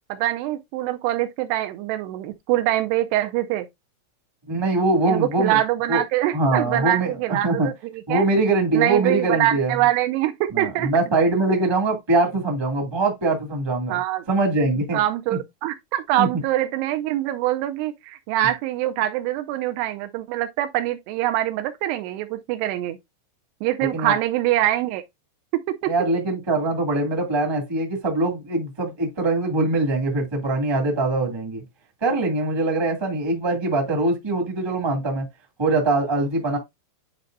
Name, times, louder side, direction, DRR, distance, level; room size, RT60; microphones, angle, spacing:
voice 1, 0.1-3.7 5.1-8.2 8.7-10.9 13.9-14.2 14.9-23.0 23.6-25.0 25.5-25.9, right 14 dB, 80° right, 2.6 m, -24 dB
voice 2, 4.5-5.6 5.9-6.0 6.3-7.7 8.1-9.8 10.5-14.0 14.3-15.0 16.2-16.4 23.9-24.1 25.9-31.6 32.0-35.2 35.6-36.6, right 2 dB, 15° right, 0.8 m, -22 dB
10.5 x 4.3 x 2.6 m
omnidirectional pair, 4.9 m